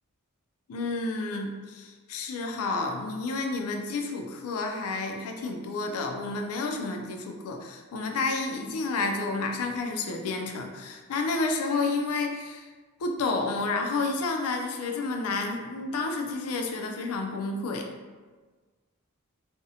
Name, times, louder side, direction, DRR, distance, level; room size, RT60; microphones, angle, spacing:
voice 1, 0.7-12.6 13.0-17.9, left 3 dB, 80° left, 3 dB, 0.4 m, -30 dB
2.5 x 2.0 x 2.7 m, 1.4 s
head